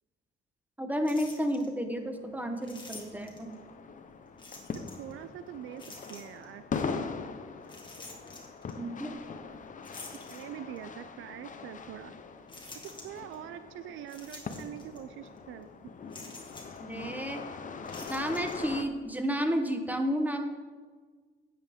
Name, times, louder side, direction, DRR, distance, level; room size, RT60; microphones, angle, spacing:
voice 1, 0.8-3.6 8.8-9.1 16.8-17.4 18.0-20.4, equal, 10° right, 6 dB, 1.0 m, -31 dB
sound 1, 1.0-1.7 2.6-3.5 4.4-5.1 5.8-6.5 7.6-8.7 9.8-10.9 11.5-11.6 12.5-13.4 14.1-15.0 15.3-15.4 16.1-16.8 17.8-18.6, left 3 dB, 25° left, 2.0 m, -48 dB
sound 2, 1.9-18.8, left 5 dB, 40° left, 0.8 m, -42 dB
voice 2, 4.9-6.6 10.3-12.1 12.8-15.7, right 11 dB, 80° right, 12 dB, 0.4 m, -44 dB
9.9 x 7.6 x 3.6 m, 1.5 s
cardioid pair, 90°, 20 cm